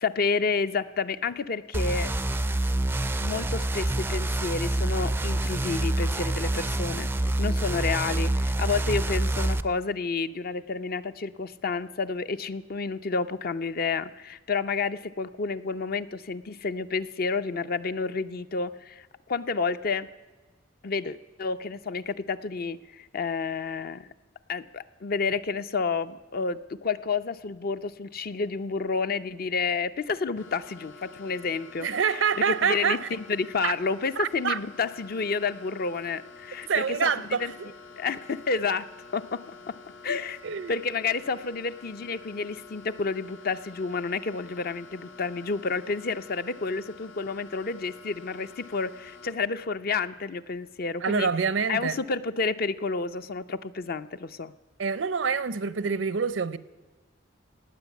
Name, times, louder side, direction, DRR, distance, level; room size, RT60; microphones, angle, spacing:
voice 1, 0.0-2.1 3.2-7.1 7.4-20.1 20.8-24.1 24.5-31.9 32.1-37.1 37.4-37.5 38.0-38.9 39.1-39.7 40.0-40.4 40.7-51.3 51.7-54.5, left 4 dB, 50° left, 0.6 m, -30 dB
sound 1, 1.7-9.6, right 1 dB, 10° right, 0.4 m, -27 dB
sound 2, 30.4-49.3, left 4 dB, 80° left, 1.7 m, -48 dB
voice 2, 31.8-33.1 33.6-33.7 34.2-34.6 36.7-37.7 40.4-40.8 51.0-52.0 54.8-56.6, right 6 dB, 80° right, 0.6 m, -26 dB
18.0 x 9.2 x 8.2 m
head